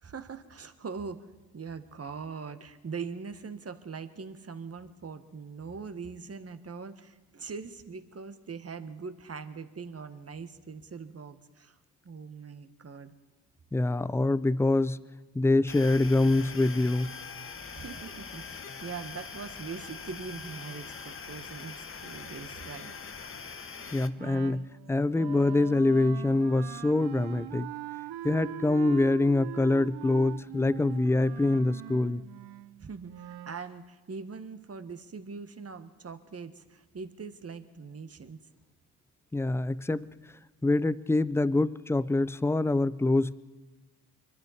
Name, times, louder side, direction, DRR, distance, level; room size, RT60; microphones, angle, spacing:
voice 1, 0.0-1.3 1.5-11.8 12.0-13.1 17.7-23.3 32.8-38.5, right 5 dB, 30° right, 9 dB, 1.5 m, -42 dB
voice 2, 13.7-15.0 15.3-17.1 23.9-27.7 28.2-32.2 39.3-40.1 40.6-43.3, left 2 dB, 5° left, 17 dB, 0.5 m, -25 dB
sound 1, 15.7-24.1, left 5 dB, 30° left, 1.1 m, -43 dB
Wind instrument woodwind instrument, 24.2-33.6, right 12 dB, 55° right, 0.7 m, -42 dB
24.5 x 12.5 x 4.3 m, 1.2 s
hypercardioid pair, 50°, 45 cm